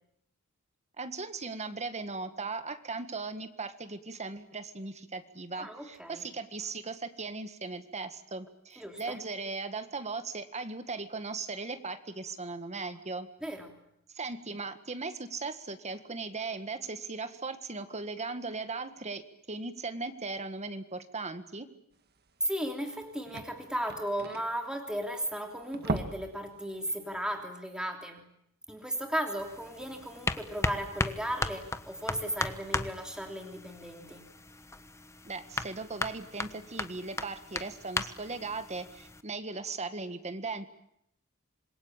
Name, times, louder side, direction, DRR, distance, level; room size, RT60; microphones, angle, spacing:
voice 1, 1.0-13.3 14.1-21.7 35.3-40.7, right 3 dB, 30° right, 10 dB, 1.7 m, -38 dB
voice 2, 5.6-6.2 8.8-9.2 13.4-13.7 22.4-28.2 28.7-34.2, equal, 5° right, 3 dB, 3.1 m, -36 dB
sound 1, 22.3-22.4 22.6-22.7 22.9-25.2 25.6-26.4 26.7-26.9 27.3-27.4, right 2 dB, 45° right, 1.8 m, -37 dB
sound 2, 29.4-39.2, left 2 dB, 15° left, 1.2 m, -37 dB
26.5 x 21.5 x 8.9 m, 0.77 s
head